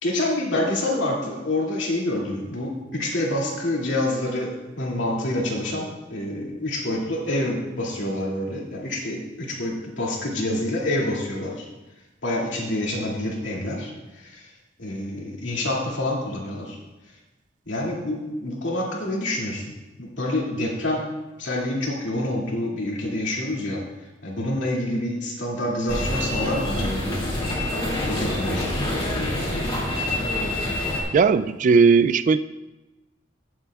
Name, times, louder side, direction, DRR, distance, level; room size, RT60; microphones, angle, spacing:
voice 1, 0.0-11.7 12.2-14.5 14.8-16.8 17.7-19.6 20.0-21.1 21.4-23.8 24.2-28.7, left 1 dB, 75° left, -3 dB, 2.4 m, -27 dB
sound 1, 25.9-31.0, left 1 dB, 25° left, 2.4 m, -26 dB
voice 2, 31.1-32.4, right 5 dB, 45° right, 12 dB, 0.3 m, -17 dB
16.5 x 7.5 x 2.4 m, 1.1 s
head